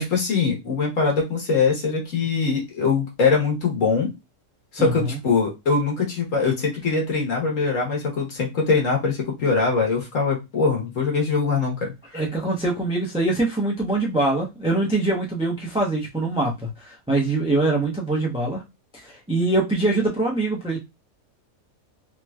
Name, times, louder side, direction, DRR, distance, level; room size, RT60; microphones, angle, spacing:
voice 1, 0.0-4.1 4.7-12.2, left 4 dB, 50° left, 1.5 m, -22 dB
voice 2, 4.8-5.2 12.1-16.5 16.8-18.6 19.0-20.8, right 2 dB, 5° right, 0.5 m, -23 dB
3.7 x 3.0 x 2.3 m
omnidirectional pair, 1.8 m